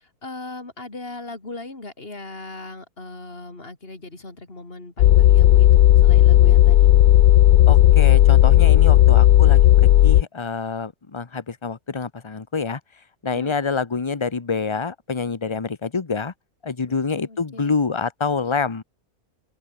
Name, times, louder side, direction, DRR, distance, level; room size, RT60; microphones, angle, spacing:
voice 1, 0.0-6.9 8.8-9.0 13.3-13.6 16.9-17.8, left 2 dB, 40° left, 4.3 m, -38 dB
sound 1, 5.0-10.2, left 13 dB, 85° left, 1.2 m, -13 dB
voice 2, 7.7-12.8 13.2-16.3 16.6-18.8, left 4 dB, 20° left, 0.9 m, -27 dB
omnidirectional pair, 1.6 m